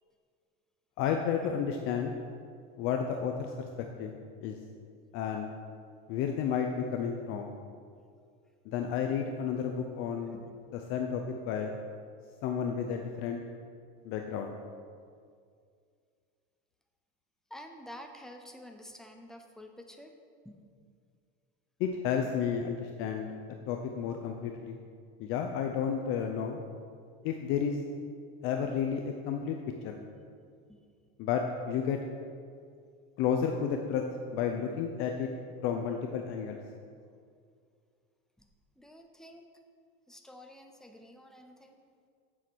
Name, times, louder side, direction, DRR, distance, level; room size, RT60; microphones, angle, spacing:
voice 1, 1.0-2.1 2.8-4.1 4.4-4.6 5.1-5.5 6.1-7.5 8.7-10.4 10.7-11.7 12.4-13.4 14.0-14.5 21.8-23.3 23.7-24.8 25.2-26.6 27.2-27.8 28.4-29.6 29.8-30.0 31.2-32.0 33.2-34.0 34.3-35.3 35.6-36.6, left 7 dB, 45° left, 3 dB, 0.7 m, -32 dB
voice 2, 17.5-20.1 20.4-20.5 29.9-30.0 30.7-30.8 38.4-38.5 38.8-39.5 40.1-41.8, left 1 dB, ahead, 4 dB, 0.6 m, -49 dB
8.5 x 7.5 x 6.2 m, 2.2 s
cardioid pair, 165°, 29 cm